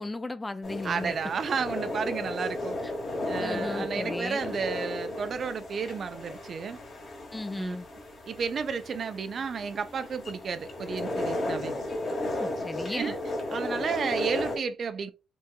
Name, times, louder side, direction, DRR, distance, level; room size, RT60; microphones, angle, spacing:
voice 1, 0.0-1.2 2.8-2.9 3.4-4.4 7.3-7.9 12.4-13.2, left 2 dB, 15° left, 0.3 m, -36 dB
sound 1, 0.6-14.6, left 1 dB, 50° left, 1.3 m, -34 dB
voice 2, 0.8-2.8 3.3-6.8 7.6-7.8 8.3-11.7 12.9-13.2 13.5-15.1, right 6 dB, 50° right, 0.5 m, -32 dB
4.6 x 2.5 x 2.3 m
cardioid pair, 90°, 0 cm